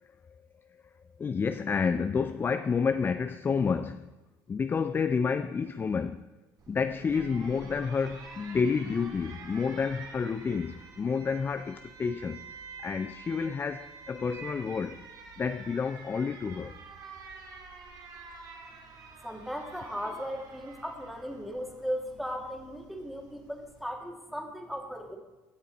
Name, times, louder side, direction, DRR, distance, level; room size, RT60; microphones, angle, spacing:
voice 1, 0.0-0.3 0.7-4.1 4.5-6.2 6.7-15.0 15.4-16.8, left 5 dB, 25° left, 0.4 m, -30 dB
Alarm, 6.6-23.8, right 4 dB, 55° right, 2.1 m, -48 dB
voice 2, 19.2-25.2, equal, ahead, 2.1 m, -37 dB
16.0 x 6.9 x 4.1 m
supercardioid pair, 85°, 8 cm